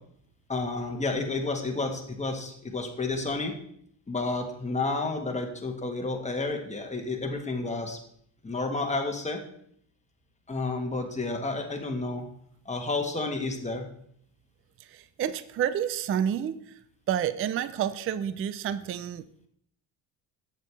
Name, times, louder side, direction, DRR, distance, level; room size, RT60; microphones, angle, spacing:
voice 1, 0.5-3.5 4.1-8.0 8.4-9.4 10.5-12.3 12.6-13.9, left 3 dB, 15° left, 3 dB, 1.4 m, -31 dB
voice 2, 14.9-16.6 17.1-19.5, right 9 dB, 30° right, 14 dB, 0.4 m, -29 dB
7.9 x 6.7 x 3.4 m, 0.67 s
supercardioid pair, 80°, 46 cm